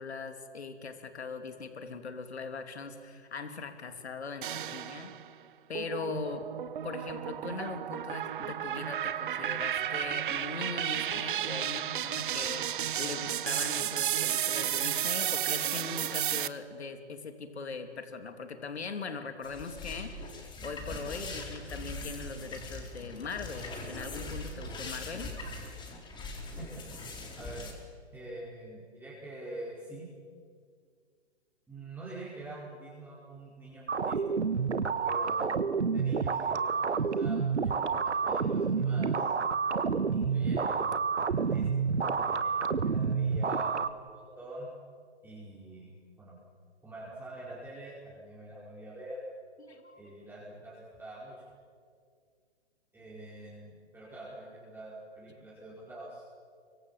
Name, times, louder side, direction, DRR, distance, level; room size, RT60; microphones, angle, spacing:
voice 1, 0.0-5.1 5.7-6.5 6.8-25.3 49.6-50.0, left 4 dB, 70° left, 7 dB, 3.2 m, -40 dB
sound 1, 4.4-5.3 5.8-16.5, right 10 dB, 50° right, 1.1 m, -33 dB
sound 2, 19.4-27.7, left 2 dB, 15° left, 4.2 m, -41 dB
voice 2, 28.1-30.1 31.7-34.4 35.0-39.3 40.1-40.9 41.2-41.9 42.2-44.7 45.2-45.9 46.2-46.4 46.8-49.2 50.0-51.5 52.9-56.2, right 1 dB, 5° right, -7 dB, 4.9 m, -45 dB
sound 3, 33.9-43.9, right 5 dB, 80° right, 1.4 m, -29 dB
29.5 x 24.5 x 7.5 m, 2.1 s
figure-of-eight pair, 130°, 34 cm